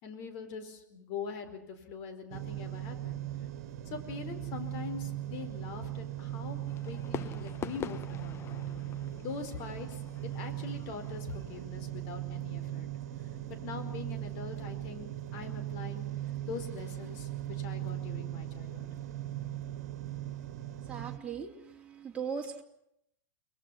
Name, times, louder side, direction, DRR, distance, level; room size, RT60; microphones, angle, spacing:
voice 1, 0.0-3.2 3.8-6.6 6.9-8.6 9.2-12.9 13.5-16.1 16.5-18.8, left 5 dB, 45° left, 7 dB, 4.8 m, -43 dB
sound 1, 2.3-21.2, right 13 dB, 55° right, 1.9 m, -39 dB
Fireworks, 6.7-11.7, left 8 dB, 25° left, 1.0 m, -44 dB
voice 2, 20.8-22.6, right 6 dB, 10° right, -1 dB, 3.6 m, -39 dB
29.5 x 21.5 x 5.8 m, 0.75 s
figure-of-eight pair, 95°, 10 cm